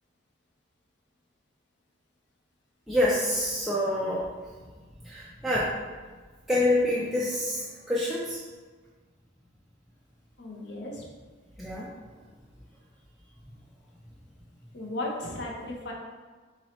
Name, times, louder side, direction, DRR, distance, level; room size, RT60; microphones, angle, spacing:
voice 1, 2.9-4.3 5.0-5.8 6.5-8.4 11.6-11.9, left 1 dB, ahead, -8 dB, 0.3 m, -27 dB
voice 2, 10.4-11.0 14.7-15.9, left 1 dB, 60° left, -2 dB, 0.7 m, -35 dB
4.3 x 2.7 x 3.0 m, 1.4 s
head